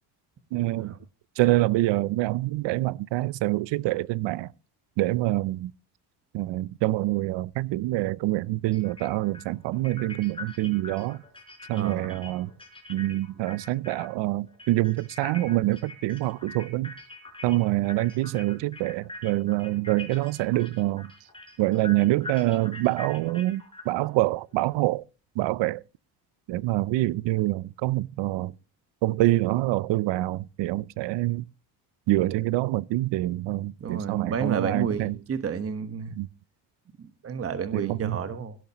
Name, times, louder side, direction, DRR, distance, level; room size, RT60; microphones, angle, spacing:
voice 1, 0.5-0.9 1.4-4.5 5.0-5.7 6.3-11.2 11.7-12.5 12.9-16.9 17.4-21.1 21.6-25.0 25.4-25.8 26.5-28.5 29.0-31.4 32.1-35.2 36.1-36.3 37.7-38.2, right 17 dB, 75° right, 0.6 m, -26 dB
sound 1, 7.5-7.6 8.7-14.2 14.5-24.7, left 3 dB, 10° left, 4.6 m, -44 dB
voice 2, 11.7-12.2 32.2-32.4 33.8-36.1 37.0-38.6, right 6 dB, 30° right, 1.3 m, -31 dB
17.0 x 13.0 x 3.0 m
cardioid pair, 140°, 43 cm